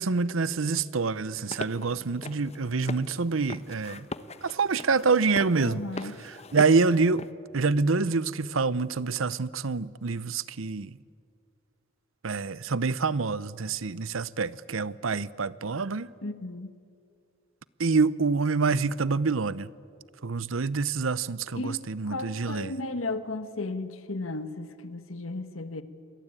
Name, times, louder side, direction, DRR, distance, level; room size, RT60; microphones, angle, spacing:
voice 1, 0.0-4.1 4.4-5.8 6.5-7.2 7.5-10.9 12.2-16.1 17.8-19.7 20.2-22.7, right 4 dB, 80° right, 0.8 m, -26 dB
sound 1, 1.3-7.3, left 3 dB, 30° left, 1.0 m, -41 dB
voice 2, 5.6-6.2 16.2-16.7 21.6-25.8, left 2 dB, 85° left, 1.5 m, -35 dB
28.0 x 22.5 x 8.9 m
head